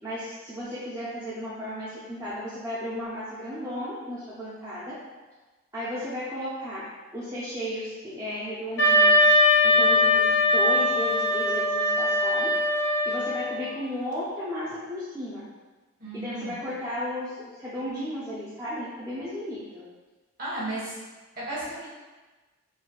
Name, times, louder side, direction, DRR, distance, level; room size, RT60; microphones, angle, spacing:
voice 1, 0.0-4.9 5.7-6.8 7.1-9.3 9.6-12.5 13.0-15.4 16.1-19.8, equal, 15° right, -11 dB, 0.4 m, -34 dB
Wind instrument woodwind instrument, 8.8-13.7, left 1 dB, 50° left, 0.5 m, -21 dB
voice 2, 16.0-16.6 20.4-21.0 21.4-21.9, right 1 dB, 45° right, -9 dB, 1.1 m, -34 dB
3.9 x 2.2 x 2.2 m, 1.2 s
head